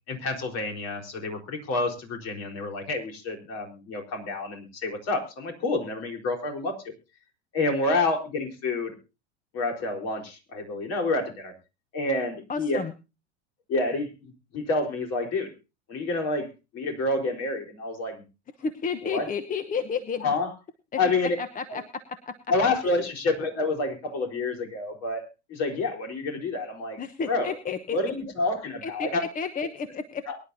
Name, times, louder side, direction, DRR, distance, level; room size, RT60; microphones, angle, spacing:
voice 1, 0.1-6.7 7.5-8.9 9.5-11.5 11.9-12.8 13.7-15.5 15.9-16.5 16.7-18.2 19.0-19.3 20.2-20.5 21.0-21.4 21.7-21.8 22.5-25.2 25.5-27.0 27.3-27.6 27.9-29.2 30.3-30.4, left 2 dB, 50° left, 3 dB, 4.3 m, -28 dB
voice 2, 12.5-12.9 18.6-20.3 21.4-21.8 22.8-22.9 27.0-28.0 28.8-30.2, left 5 dB, 25° left, 11 dB, 1.0 m, -31 dB
23.0 x 11.0 x 2.7 m, 0.29 s
hypercardioid pair, 85°, 34 cm